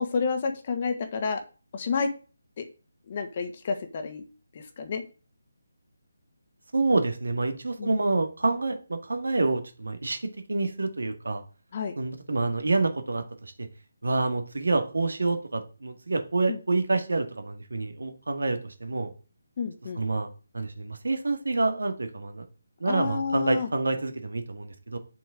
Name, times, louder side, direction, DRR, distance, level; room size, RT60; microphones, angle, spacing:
voice 1, 0.0-1.4 1.7-2.1 2.6-2.7 3.1-4.2 4.5-5.0 7.8-7.9 11.7-11.9 16.5-16.6 19.6-20.0 22.8-23.7, left 5 dB, 35° left, 7 dB, 1.6 m, -30 dB
voice 2, 6.7-11.4 12.0-13.7 14.0-19.1 20.0-20.3 20.5-22.4 22.8-25.0, right 3 dB, 65° right, 8 dB, 1.9 m, -27 dB
8.9 x 7.0 x 5.0 m, 0.35 s
figure-of-eight pair, 150°, 0 cm